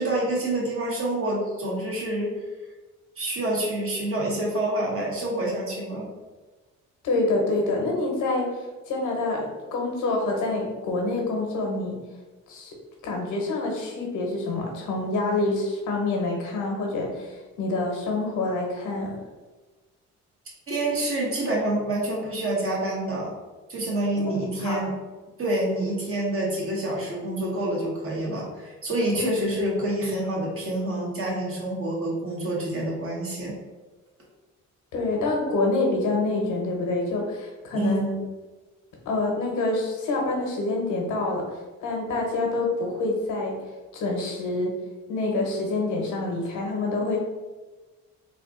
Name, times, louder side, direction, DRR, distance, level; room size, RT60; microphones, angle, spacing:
voice 1, 0.0-2.3 3.1-6.0 20.7-23.3 23.7-24.9 25.4-33.5 37.7-38.0, right 1 dB, 45° right, -4 dB, 1.5 m, -27 dB
voice 2, 7.0-8.5 8.9-12.0 12.5-12.8 13.0-19.2 24.1-24.3 24.6-24.8 29.1-29.3 34.9-38.2 39.0-41.4 41.8-43.6 43.9-44.7 45.1-47.2, left 2 dB, 85° left, 0 dB, 1.0 m, -26 dB
3.4 x 2.5 x 3.6 m, 1.2 s
cardioid pair, 90°, 30 cm